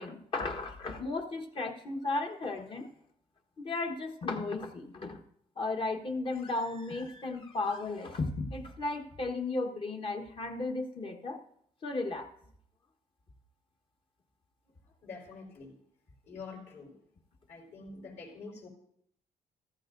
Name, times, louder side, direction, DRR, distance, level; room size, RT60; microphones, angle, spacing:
voice 1, 0.0-2.9 3.6-5.2 5.6-11.4 11.8-12.3, left 3 dB, 40° left, 4 dB, 1.4 m, -35 dB
voice 2, 15.0-15.7 16.3-16.9 17.5-18.7, left 4 dB, 60° left, 1 dB, 4.8 m, -46 dB
14.5 x 14.0 x 2.7 m, 0.69 s
cardioid pair, 90°, 13 cm